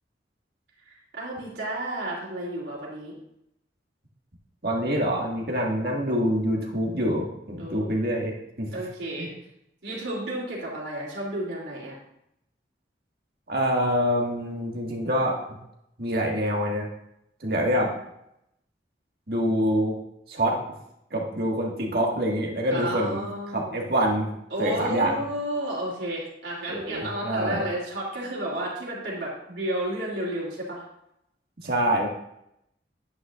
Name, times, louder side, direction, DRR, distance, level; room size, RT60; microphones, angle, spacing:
voice 1, 0.9-3.1 5.5-5.8 7.6-7.9 8.7-9.3 9.8-12.0 22.7-23.8 24.5-30.8, right 1 dB, 75° right, -4 dB, 3.1 m, -32 dB
voice 2, 4.6-8.7 9.2-9.3 13.5-15.6 16.0-16.9 17.4-17.9 19.3-19.9 20.3-20.6 21.1-23.3 23.5-24.3 24.6-25.2 26.7-27.6 31.6-32.1, equal, 55° right, -1 dB, 1.9 m, -26 dB
9.6 x 9.0 x 2.5 m, 0.79 s
head